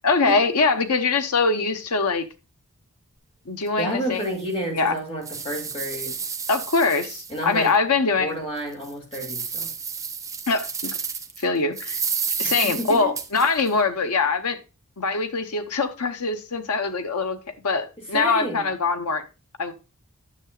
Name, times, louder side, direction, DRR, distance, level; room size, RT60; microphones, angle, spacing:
voice 1, 0.0-2.2 3.5-4.3 4.7-4.9 6.5-8.3 10.5-11.0 11.4-12.0 12.4-14.6 15.0-17.4 17.6-19.2 19.6-19.7, left 4 dB, 80° left, 1.0 m, -23 dB
sound 1, 3.6-3.7 4.2-4.3 4.9-7.7 8.1-8.2 8.7-11.4 11.8-13.7, right 6 dB, 15° right, 0.6 m, -31 dB
voice 2, 3.8-6.2 7.3-7.7 8.2-9.7 12.4-13.1 18.1-18.7, equal, 25° left, 2.6 m, -30 dB
9.7 x 6.7 x 2.4 m
head